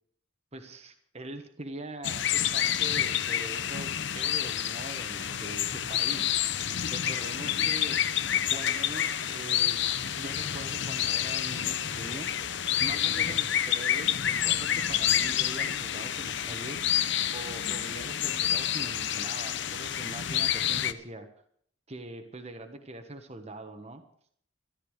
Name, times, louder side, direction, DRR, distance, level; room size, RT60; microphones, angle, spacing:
voice 1, 0.5-6.6 6.9-8.0 8.5-9.8 10.1-12.3 12.6-16.9 17.3-21.3 21.9-24.0, right 2 dB, 30° right, 6 dB, 1.2 m, -43 dB
sound 1, 2.0-20.9, left 10 dB, 60° left, 0.8 m, -29 dB
14.0 x 12.0 x 6.5 m, 0.63 s
head